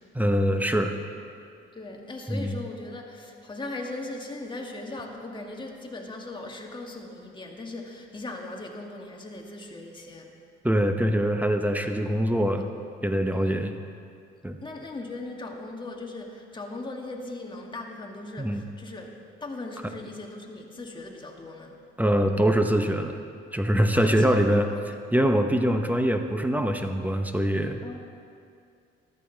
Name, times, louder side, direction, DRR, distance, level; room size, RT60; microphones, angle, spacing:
voice 1, 0.1-0.9 2.3-2.6 10.6-12.7 13.0-13.8 14.4-14.6 18.4-18.7 22.0-23.2 23.5-24.7 25.1-28.0, equal, 10° right, 6 dB, 0.8 m, -23 dB
voice 2, 1.7-10.3 13.3-13.6 14.6-19.1 19.4-21.8 23.9-24.5 27.8-28.0, left 2 dB, 25° left, 1 dB, 1.8 m, -38 dB
14.0 x 13.0 x 4.0 m, 2.4 s
cardioid pair, 90°, 20 cm